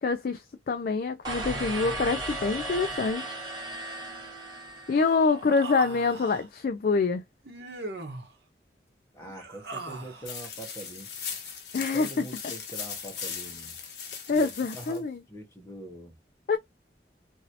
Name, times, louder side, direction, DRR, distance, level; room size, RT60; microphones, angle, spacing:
voice 1, 0.0-3.4 4.9-7.2 11.7-12.2 14.3-15.2 16.5-16.6, left 4 dB, 50° left, 0.3 m, -26 dB
sound 1, 1.2-5.4, right 2 dB, 25° right, 1.6 m, -36 dB
Human voice, 4.9-6.5 7.5-8.3 9.2-10.4, right 2 dB, 60° right, 1.0 m, -40 dB
voice 2, 9.1-11.1 11.9-13.8 14.3-16.1, right 1 dB, 15° left, 1.2 m, -43 dB
sound 2, 10.3-15.0, left 6 dB, 70° left, 1.0 m, -38 dB
3.0 x 2.7 x 2.7 m
head